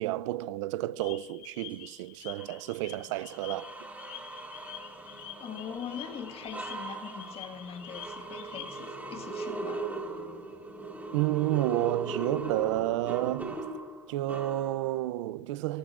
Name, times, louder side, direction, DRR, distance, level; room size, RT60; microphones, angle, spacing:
voice 1, 0.0-3.7 11.1-13.6 14.1-15.8, right 16 dB, 75° right, 0.5 m, -30 dB
sound 1, 1.0-8.9, left 11 dB, 70° left, 3.3 m, -47 dB
sound 2, 2.4-2.5 3.1-15.1, right 2 dB, 10° right, 3.9 m, -40 dB
voice 2, 5.4-9.9, left 7 dB, 40° left, 1.8 m, -42 dB
29.5 x 19.0 x 2.5 m
hypercardioid pair, 90°, 16 cm